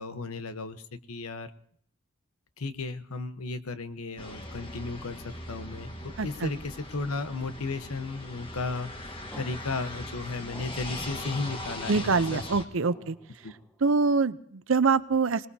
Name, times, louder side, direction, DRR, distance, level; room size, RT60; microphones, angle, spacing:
voice 1, 0.0-1.5 2.6-12.4 13.0-13.1 13.4-13.5, left 3 dB, 90° left, 11 dB, 1.1 m, -35 dB
sound 1, 4.2-12.7, left 1 dB, 25° left, 1.6 m, -40 dB
voice 2, 6.2-6.5 11.9-13.2 13.8-15.5, right 4 dB, 65° right, 15 dB, 0.6 m, -25 dB
sound 2, 9.3-12.3 12.8-14.1, equal, 5° left, 1.2 m, -51 dB
25.0 x 19.5 x 2.8 m, 0.63 s
head